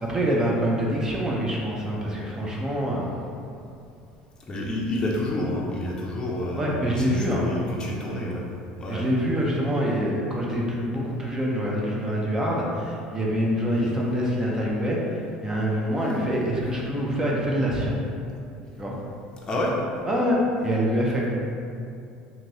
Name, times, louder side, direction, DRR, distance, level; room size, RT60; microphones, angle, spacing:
voice 1, 0.0-3.1 6.5-7.5 8.9-18.0 18.8-18.9 20.0-21.3, equal, 20° right, -3 dB, 0.5 m, -25 dB
voice 2, 4.5-8.4 8.8-9.1 13.7-13.9 19.5-19.8, left 1 dB, 25° left, -4 dB, 0.5 m, -29 dB
3.0 x 2.6 x 2.6 m, 2.5 s
supercardioid pair, 95°, 3 cm